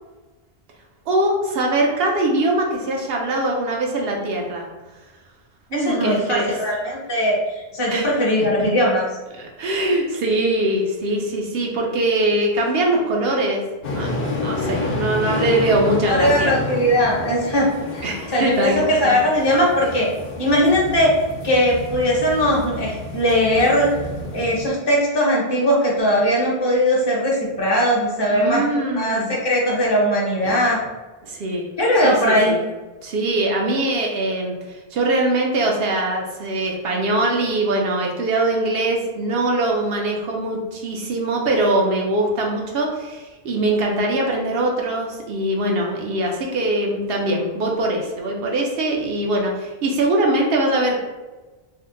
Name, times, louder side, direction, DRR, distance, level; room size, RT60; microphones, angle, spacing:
voice 1, 1.1-4.7 5.7-6.5 7.9-8.2 9.4-13.6 13.9-14.1 14.4-16.5 18.0-18.9 28.3-29.3 30.4-30.6 31.2-31.7 32.0-32.6 33.0-51.0, right 1 dB, 75° right, 0 dB, 0.8 m, -22 dB
voice 2, 5.7-9.0 16.1-17.7 17.9-20.1 20.4-21.1 21.4-23.9 24.3-28.7 29.0-30.8 31.8-32.6, equal, 30° left, -4 dB, 0.7 m, -19 dB
sound 1, 13.8-24.7, left 2 dB, 70° left, 0.8 m, -29 dB
2.7 x 2.1 x 3.7 m, 1.2 s
omnidirectional pair, 1.0 m